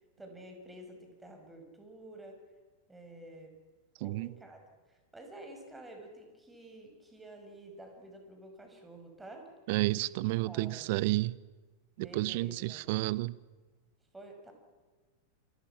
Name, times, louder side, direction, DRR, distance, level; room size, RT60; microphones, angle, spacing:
voice 1, 0.2-2.4 2.9-3.6 4.0-4.6 4.9-9.5 9.9-10.1 10.4-10.9 12.0-12.8 14.1-14.5, right 1 dB, 10° right, 4 dB, 6.0 m, -50 dB
voice 2, 4.0-4.3 9.7-11.4 12.0-13.4, right 19 dB, 50° right, 21 dB, 0.7 m, -31 dB
28.5 x 25.5 x 6.0 m, 1.3 s
figure-of-eight pair, 90°, 0 cm